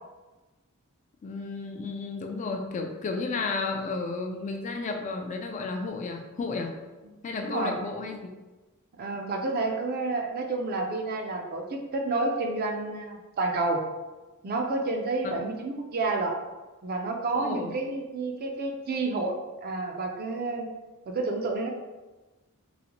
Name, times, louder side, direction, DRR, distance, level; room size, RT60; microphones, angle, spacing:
voice 1, 1.2-6.7 7.2-8.3 15.2-15.4 17.3-17.7, left 3 dB, 35° left, 3 dB, 0.3 m, -32 dB
voice 2, 7.1-7.7 9.0-13.8 14.4-16.4 16.8-20.7 21.1-21.7, right 3 dB, 45° right, 2 dB, 0.4 m, -30 dB
3.9 x 2.1 x 2.9 m, 1.2 s
head